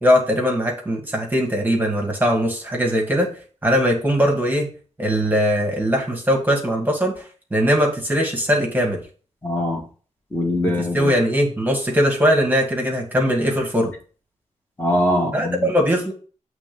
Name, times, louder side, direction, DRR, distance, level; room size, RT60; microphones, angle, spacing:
voice 1, 0.0-3.3 3.6-4.7 5.0-7.2 7.5-9.0 10.6-13.9 15.2-16.1, equal, 15° right, 0 dB, 1.6 m, -20 dB
voice 2, 9.4-9.8 10.3-11.1 14.8-15.7, left 1 dB, 15° left, -1 dB, 1.6 m, -22 dB
7.6 x 3.3 x 5.2 m, 0.40 s
wide cardioid pair, 125°, 13 cm